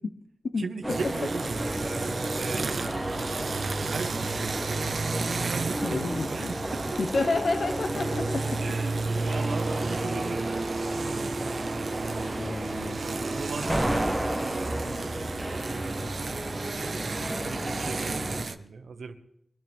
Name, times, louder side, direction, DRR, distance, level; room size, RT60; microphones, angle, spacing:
voice 1, 0.6-2.8 3.8-5.1 5.5-7.0 8.5-10.9 13.2-13.7 14.4-14.9 15.5-16.1 16.6-16.8 17.4-19.1, right 4 dB, 90° right, 7 dB, 1.3 m, -38 dB
sound 1, 0.8-18.4, right 1 dB, 5° right, 1.4 m, -33 dB
sound 2, 0.9-18.6, right 4 dB, 70° right, 0.9 m, -33 dB
voice 2, 5.8-6.5 7.0-8.6 12.4-13.0, left 3 dB, 70° left, 8 dB, 0.9 m, -30 dB
23.0 x 12.0 x 3.5 m, 0.73 s
wide cardioid pair, 75°, 0 cm